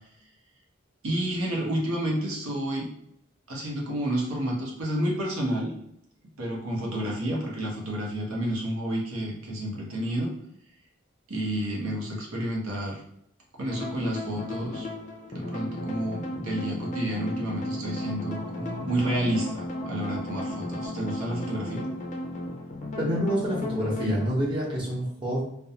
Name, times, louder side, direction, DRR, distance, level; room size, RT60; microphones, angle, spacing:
voice 1, 1.0-2.9 3.5-5.7 6.4-10.3 11.3-13.0 13.6-14.9 15.3-21.9, right 1 dB, 85° right, -2 dB, 0.8 m, -30 dB
sound 1, 13.6-24.3, left 1 dB, 35° left, 0.4 m, -34 dB
voice 2, 23.0-25.4, equal, 25° right, -5 dB, 0.8 m, -27 dB
2.5 x 2.2 x 2.7 m, 0.76 s
head